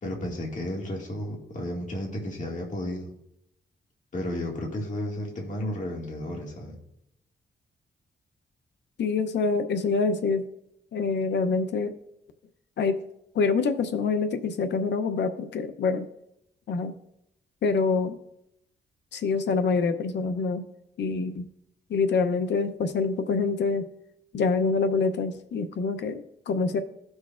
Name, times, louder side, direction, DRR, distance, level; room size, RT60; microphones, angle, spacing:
voice 1, 0.0-3.1 4.1-6.8, left 1 dB, 45° left, -1 dB, 2.0 m, -33 dB
voice 2, 9.0-10.5 10.9-11.9 12.8-13.0 13.3-16.0 16.7-16.9 17.6-18.2 19.1-20.6 21.0-21.5 21.9-23.8 24.3-26.8, left 4 dB, 75° left, 9 dB, 0.7 m, -26 dB
16.0 x 6.4 x 2.4 m, 0.80 s
cardioid pair, 90°, 18 cm